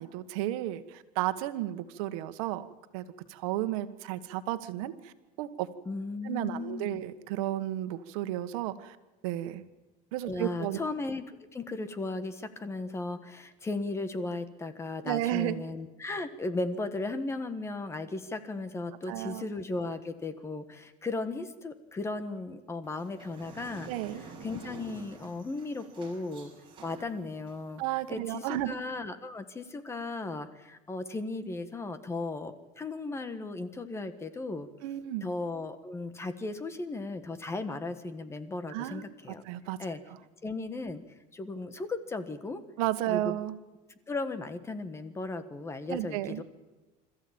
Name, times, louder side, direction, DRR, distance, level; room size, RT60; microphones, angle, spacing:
voice 1, 0.0-2.7 2.9-5.7 6.2-9.0 9.2-9.6 10.1-10.8 15.0-15.6 19.1-19.5 23.9-24.2 27.8-28.8 34.8-35.3 38.7-39.0 39.4-39.8 42.8-43.6 45.9-46.4, right 14 dB, 80° right, 11 dB, 1.5 m, -33 dB
voice 2, 5.8-7.0 10.2-23.9 24.2-26.5 26.8-27.8 28.1-34.7 35.2-39.4 39.8-40.0 40.4-41.0 41.3-42.6 43.1-43.3 44.1-46.4, left 3 dB, 15° left, 11 dB, 1.5 m, -36 dB
sound 1, 22.8-28.1, right 3 dB, 30° right, 6.4 m, -49 dB
26.0 x 14.5 x 8.8 m, 1.2 s
cardioid pair, 155°, 18 cm